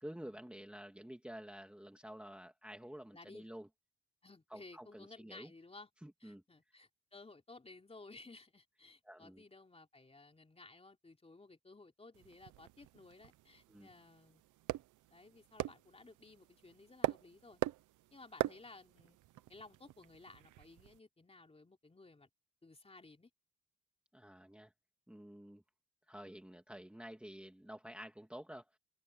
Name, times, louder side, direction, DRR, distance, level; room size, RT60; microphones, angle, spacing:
voice 1, 0.0-3.7 4.5-5.5 6.0-6.4 9.0-9.4 13.7-13.9 24.1-24.7 25.1-25.6 26.1-28.8, equal, 5° right, 2.3 m, -50 dB
voice 2, 3.1-3.5 4.2-5.9 6.2-14.4 15.1-17.6 18.1-19.2 19.5-22.3 22.6-23.3, left 3 dB, 20° left, 3.7 m, -57 dB
sound 1, 12.1-21.0, right 15 dB, 85° right, 0.9 m, -43 dB
cardioid pair, 90°, 30 cm